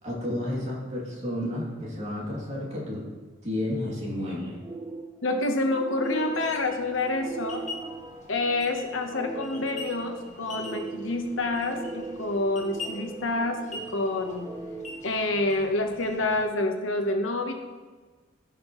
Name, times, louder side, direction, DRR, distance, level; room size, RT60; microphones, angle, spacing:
voice 1, 0.0-3.0 3.4-4.6, left 1 dB, 35° right, -5 dB, 2.8 m, -31 dB
sound 1, 4.6-15.9, right 3 dB, 20° right, 0.6 m, -41 dB
voice 2, 5.2-7.7 8.3-14.5 15.0-17.5, left 2 dB, 85° left, 4 dB, 1.1 m, -28 dB
sound 2, 6.0-16.5, left 3 dB, 40° left, 1.4 m, -44 dB
15.5 x 5.9 x 3.2 m, 1.4 s
head